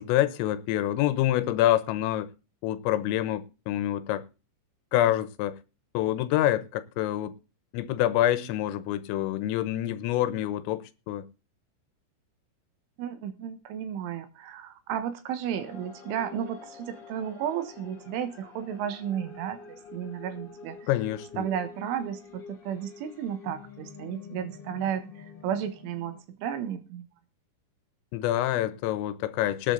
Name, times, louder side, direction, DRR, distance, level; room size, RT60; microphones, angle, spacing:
voice 1, 0.0-2.3 2.6-4.2 4.9-5.6 6.0-7.3 7.7-11.3 20.9-21.5 28.1-29.7, left 13 dB, 85° left, 3.6 m, -26 dB
voice 2, 13.0-20.9 21.4-27.1, right 9 dB, 75° right, 3.7 m, -33 dB
sound 1, 15.5-26.2, left 6 dB, 60° left, 1.1 m, -47 dB
19.0 x 8.6 x 3.9 m
omnidirectional pair, 5.8 m